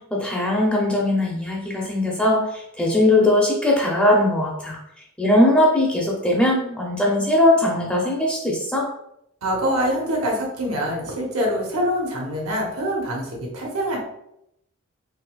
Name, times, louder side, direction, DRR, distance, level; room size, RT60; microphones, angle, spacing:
voice 1, 0.0-4.8 5.2-8.9, left 1 dB, 5° left, -3 dB, 0.5 m, -20 dB
voice 2, 9.4-14.0, equal, 80° right, -1 dB, 0.9 m, -25 dB
4.0 x 2.5 x 2.3 m, 0.78 s
head